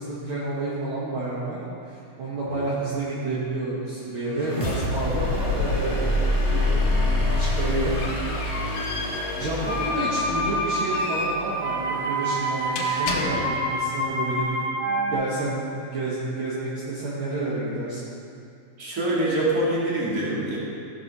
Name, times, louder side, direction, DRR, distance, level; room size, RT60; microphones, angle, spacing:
voice 1, 0.0-1.6 1.9-6.1 6.5-7.9 9.4-14.5 14.8-18.0, right 2 dB, 50° right, -8 dB, 2.2 m, -30 dB
sound 1, 4.3-14.1, left 1 dB, 25° left, 0.7 m, -27 dB
sound 2, 7.2-13.8, left 3 dB, 80° left, 2.6 m, -35 dB
sound 3, 9.6-15.1, right 1 dB, 75° right, 3.1 m, -27 dB
voice 2, 18.8-20.6, right 1 dB, 30° right, -6 dB, 2.6 m, -25 dB
15.5 x 6.1 x 5.4 m, 2.6 s
omnidirectional pair, 3.5 m